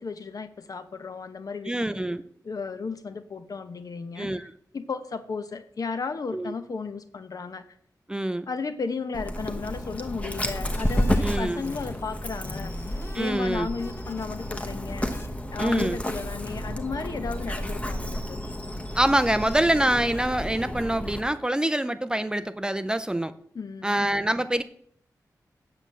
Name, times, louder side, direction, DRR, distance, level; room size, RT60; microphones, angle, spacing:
voice 1, 0.0-1.9 2.4-4.3 4.7-7.6 8.5-12.7 13.1-15.2 15.5-18.4 23.5-24.0, left 4 dB, 60° left, 10 dB, 1.0 m, -34 dB
voice 2, 1.7-2.2 4.2-4.5 6.3-6.5 8.1-8.5 11.2-11.6 13.1-13.7 15.6-16.0 18.9-23.3 23.8-24.6, right 1 dB, 10° right, 12 dB, 0.5 m, -25 dB
Dog, 9.1-21.2, equal, 20° left, 1.0 m, -31 dB
sound 1, 10.6-12.1 12.3-14.3 14.6-15.3 15.7-15.8 16.1-16.3, left 2 dB, 40° left, 1.3 m, -42 dB
8.2 x 6.9 x 7.3 m, 0.62 s
wide cardioid pair, 145°, 7 cm